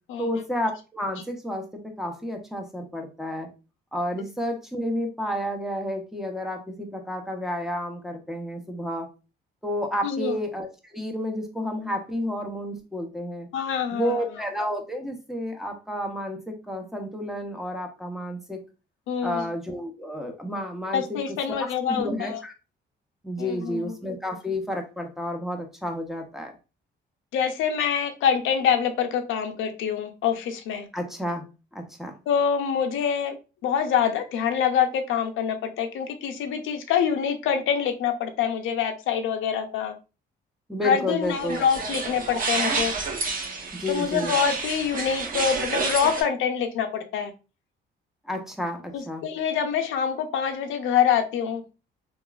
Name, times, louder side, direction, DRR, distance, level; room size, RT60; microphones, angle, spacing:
voice 1, 0.2-3.5 3.9-9.1 9.6-13.5 13.9-18.6 19.2-22.5 23.2-26.5 30.9-31.4 31.7-32.1 40.7-41.6 43.7-44.4 48.2-49.3, left 1 dB, ahead, 1 dB, 0.6 m, -31 dB
voice 2, 10.0-10.3 13.5-14.2 19.1-19.5 20.9-22.4 23.4-23.9 27.3-30.9 32.3-33.3 33.6-39.9 40.8-42.9 43.9-47.3 48.9-51.6, left 7 dB, 80° left, 6 dB, 0.5 m, -25 dB
sound 1, 41.2-46.2, right 4 dB, 45° right, 0.8 m, -29 dB
2.9 x 2.3 x 2.3 m, 0.31 s
cardioid pair, 90°, 20 cm